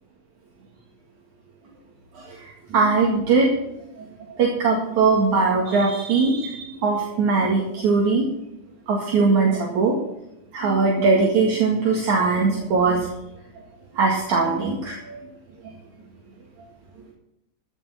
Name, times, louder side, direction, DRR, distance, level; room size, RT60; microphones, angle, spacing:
voice 1, 2.7-3.6 4.0-4.1 4.4-8.3 8.9-10.0 10.5-13.1 13.9-15.2, right 4 dB, 65° right, -2 dB, 3.3 m, -20 dB
15.5 x 6.5 x 7.2 m, 0.85 s
omnidirectional pair, 3.6 m